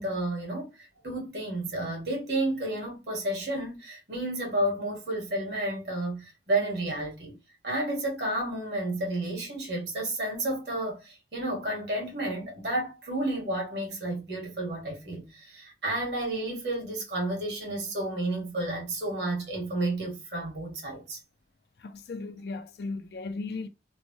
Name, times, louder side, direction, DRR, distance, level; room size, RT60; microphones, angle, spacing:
voice 1, 0.0-7.4 7.6-21.2, right 1 dB, 65° right, 1.5 m, -31 dB
voice 2, 21.8-23.7, left 3 dB, 60° left, 0.4 m, -36 dB
3.2 x 2.2 x 2.6 m
head